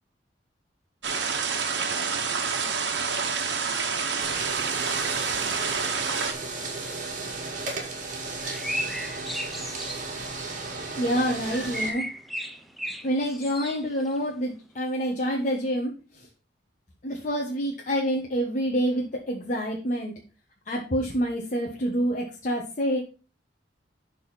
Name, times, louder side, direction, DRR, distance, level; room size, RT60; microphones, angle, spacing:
sound 1, 1.0-6.3, right 5 dB, 75° right, 1.2 m, -28 dB
sound 2, 4.2-11.9, right 3 dB, 45° right, 2.0 m, -35 dB
sound 3, 6.6-6.7 7.1-7.2 8.4-10.1 11.5-14.2, equal, ahead, 0.7 m, -35 dB
voice 1, 11.0-12.1 13.0-16.3 17.0-20.1 20.7-23.0, equal, 45° left, -2 dB, 1.3 m, -27 dB
11.0 x 4.1 x 4.1 m, 0.34 s
head